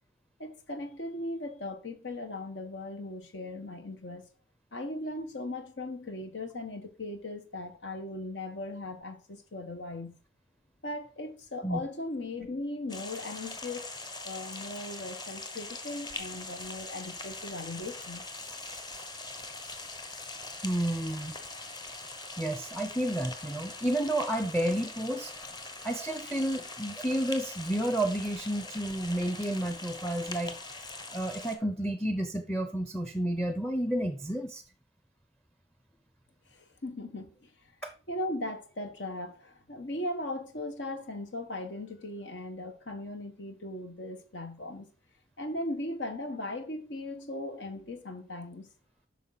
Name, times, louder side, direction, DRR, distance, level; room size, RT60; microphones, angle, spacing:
voice 1, 0.4-4.2 4.7-10.2 10.8-13.9 14.2-18.2 36.5-37.5 38.1-44.9 45.4-48.7, left 1 dB, 75° left, 1.4 m, -38 dB
sound 1, 12.9-31.6, left 3 dB, 25° left, 1.0 m, -42 dB
voice 2, 20.6-21.3 22.4-25.3 25.8-30.6 31.1-34.6 37.8-37.9, right 1 dB, 5° left, 0.6 m, -31 dB
9.2 x 6.0 x 4.0 m
head